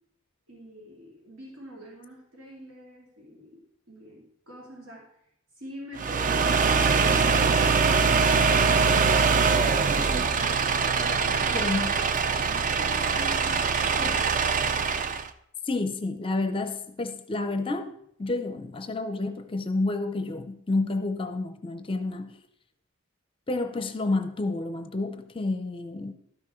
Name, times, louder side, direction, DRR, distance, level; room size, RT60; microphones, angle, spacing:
voice 1, 0.5-5.1 5.6-7.8 10.8-11.7 12.2-13.9, equal, 80° right, -3 dB, 2.5 m, -44 dB
sound 1, 6.0-15.3, right 5 dB, 40° right, 0.4 m, -23 dB
voice 2, 11.5-12.0 14.0-14.2 15.6-22.4 23.5-26.1, left 2 dB, 25° left, 9 dB, 0.5 m, -30 dB
12.5 x 6.1 x 4.3 m, 0.72 s
head